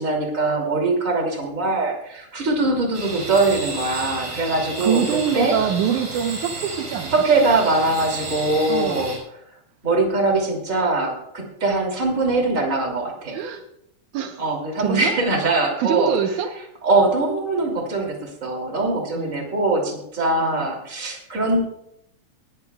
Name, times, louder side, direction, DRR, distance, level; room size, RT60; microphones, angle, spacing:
voice 1, 0.0-5.0 5.3-5.5 7.1-9.1 9.8-13.4 14.4-16.1 16.8-21.6, right 2 dB, 25° right, 1 dB, 2.8 m, -22 dB
sound 1, 2.9-9.2, right 3 dB, 55° right, 6.0 m, -32 dB
voice 2, 4.8-7.2 8.7-9.2 13.3-13.6 14.1-14.4 14.8-15.2 15.8-16.5 19.2-19.5 20.4-20.7, right 8 dB, 80° right, 5 dB, 2.3 m, -24 dB
19.0 x 14.0 x 2.3 m, 0.77 s
omnidirectional pair, 3.5 m